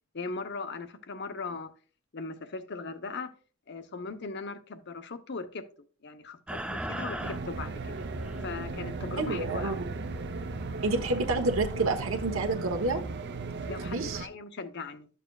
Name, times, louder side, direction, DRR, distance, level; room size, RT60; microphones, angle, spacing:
voice 1, 0.1-1.7 2.1-3.3 3.7-5.6 6.0-7.9 8.4-9.8 13.7-15.1, left 4 dB, 55° left, 0.8 m, -39 dB
sound 1, 6.5-12.5, equal, 5° right, 0.5 m, -40 dB
sound 2, 7.2-14.2, right 3 dB, 55° right, 0.7 m, -37 dB
voice 2, 9.2-9.7 10.8-13.0 13.8-14.2, right 2 dB, 75° right, 1.1 m, -29 dB
12.5 x 6.7 x 2.3 m
head